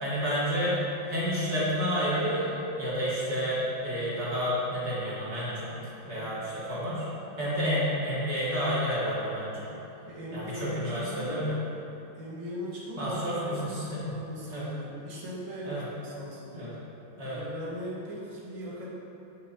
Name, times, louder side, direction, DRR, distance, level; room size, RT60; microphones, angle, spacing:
voice 1, 0.0-0.8 1.1-2.5 2.8-5.8 6.1-7.1 7.4-9.7 10.3-11.5 13.0-14.1 14.5-14.7 15.6-15.8 16.5-16.7 17.2-17.4, equal, 35° right, -8 dB, 1.8 m, -30 dB
voice 2, 10.1-11.4 12.1-16.8 17.3-18.9, equal, 55° right, -6 dB, 0.3 m, -40 dB
7.2 x 6.8 x 2.8 m, 2.9 s
omnidirectional pair, 2.2 m